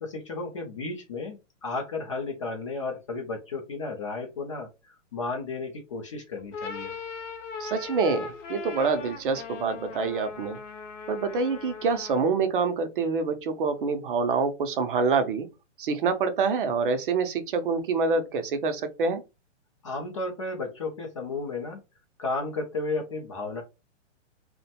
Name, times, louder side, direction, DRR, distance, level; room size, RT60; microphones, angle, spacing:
voice 1, 0.0-6.9 19.8-21.8 22.2-23.6, left 3 dB, 30° left, 0.4 m, -33 dB
sound 1, 6.4-12.4, left 5 dB, 80° left, 0.7 m, -39 dB
voice 2, 7.6-10.6 11.1-15.5 15.8-19.2, right 4 dB, 45° right, 0.5 m, -26 dB
2.5 x 2.1 x 2.7 m
hypercardioid pair, 150°, 37 cm